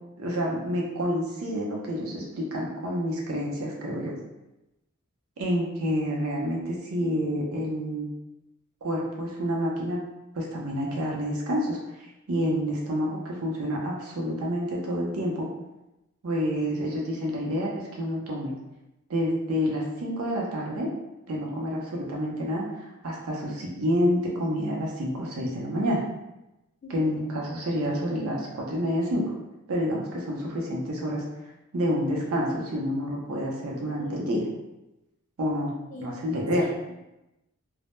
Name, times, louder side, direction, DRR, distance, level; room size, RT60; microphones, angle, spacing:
voice 1, 0.2-4.1 5.4-8.1 8.8-10.0 10.3-15.5 16.2-18.5 19.1-20.9 21.3-26.0 26.9-29.3 29.7-31.2 31.7-34.4 35.4-35.7 36.0-36.7, equal, 75° right, -2 dB, 0.6 m, -28 dB
voice 2, 34.0-34.3 35.9-36.2 36.6-36.9, left 3 dB, 35° left, -2 dB, 0.4 m, -42 dB
2.1 x 2.0 x 3.0 m, 0.95 s
head